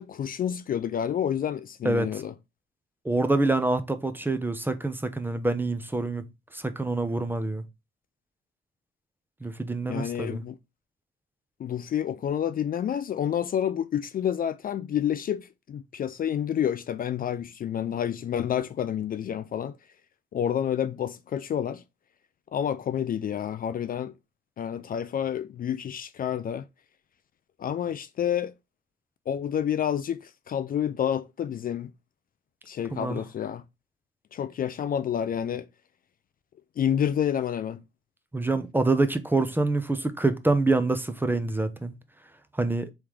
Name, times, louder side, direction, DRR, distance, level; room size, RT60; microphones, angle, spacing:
voice 1, 0.0-2.3 9.9-10.6 11.6-19.7 20.3-21.8 22.5-24.1 24.6-26.6 27.6-28.5 29.3-31.9 32.7-33.6 34.3-35.7 36.8-37.8, left 9 dB, 45° left, 0.4 m, -29 dB
voice 2, 1.8-2.2 3.0-6.2 6.5-7.6 9.4-10.4 32.9-33.2 38.3-41.9 42.6-42.9, right 2 dB, 10° right, 0.6 m, -26 dB
3.5 x 3.1 x 4.9 m
cardioid pair, 90°, 20 cm